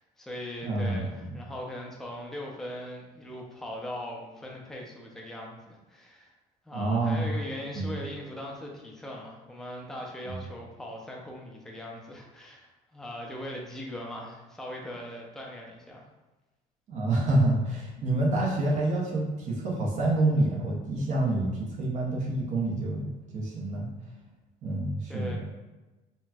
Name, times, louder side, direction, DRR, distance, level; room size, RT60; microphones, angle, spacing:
voice 1, 0.0-6.3 6.7-16.1 25.1-25.4, left 1 dB, 5° left, -1 dB, 0.4 m, -40 dB
voice 2, 0.6-1.0 6.7-7.3 7.7-7.9 10.3-10.4 16.9-23.9 24.6-25.4, right 2 dB, 50° right, -3 dB, 0.7 m, -27 dB
4.0 x 2.1 x 2.2 m, 1.1 s
cardioid pair, 125°, 16 cm